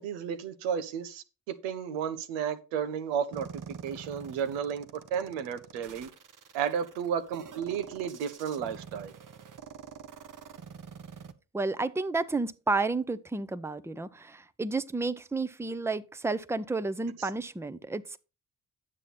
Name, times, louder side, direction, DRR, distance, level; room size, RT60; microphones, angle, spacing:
voice 1, 0.0-6.1 6.5-9.1, right 8 dB, 85° right, 0.9 m, -33 dB
sound 1, 3.3-11.3, right 7 dB, 45° right, 1.1 m, -46 dB
voice 2, 11.5-18.2, right 3 dB, 5° right, 0.7 m, -31 dB
9.8 x 7.4 x 4.2 m
hypercardioid pair, 45°, 43 cm